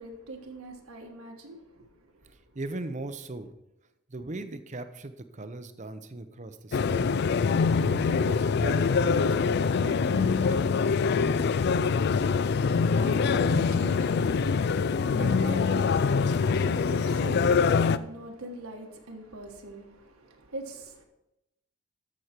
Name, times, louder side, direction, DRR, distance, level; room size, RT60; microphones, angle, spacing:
voice 1, 0.0-1.8 2.2-2.3 11.9-21.0, right 2 dB, 75° right, 1.5 m, -42 dB
voice 2, 2.5-3.5 4.1-7.1 7.8-10.6, right 2 dB, 35° right, 0.7 m, -39 dB
sound 1, 6.7-18.0, left 5 dB, 50° left, 0.3 m, -24 dB
13.5 x 6.2 x 4.5 m
head